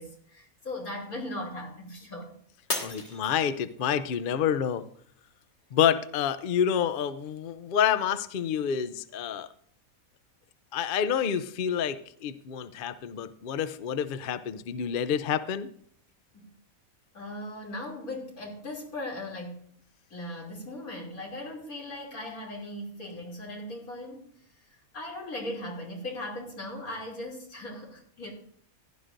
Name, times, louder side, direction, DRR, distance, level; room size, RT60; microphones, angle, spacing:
voice 1, 0.0-2.3 16.3-16.4 17.1-19.6 20.1-24.3 24.5-24.7 24.9-28.3, left 1 dB, 80° left, -1 dB, 3.3 m, -38 dB
Shatter, 2.7-4.0 4.5-5.0 5.5-5.6, left 2 dB, 35° left, 1.7 m, -35 dB
voice 2, 2.8-4.9 5.7-9.5 10.7-15.7, left 8 dB, 60° left, 13 dB, 0.5 m, -28 dB
16.0 x 11.5 x 2.6 m, 0.62 s
omnidirectional pair, 1.5 m